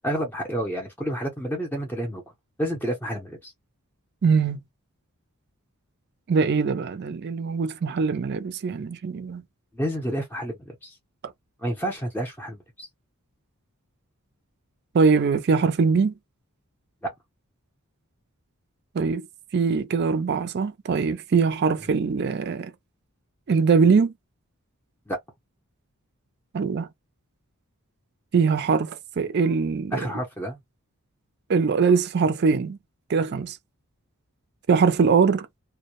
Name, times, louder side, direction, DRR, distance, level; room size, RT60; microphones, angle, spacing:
voice 1, 0.0-2.2 2.6-3.5 9.7-11.0 11.6-12.9 17.0-17.1 25.1-25.2 29.9-30.6, equal, 10° left, 0.6 m, -29 dB
voice 2, 4.2-4.6 6.3-9.4 14.9-16.1 18.9-19.3 19.5-22.7 23.5-24.1 26.5-26.9 28.3-30.0 31.5-32.8 33.1-33.6 34.7-35.5, right 5 dB, 45° right, 0.4 m, -22 dB
2.1 x 2.0 x 2.9 m
head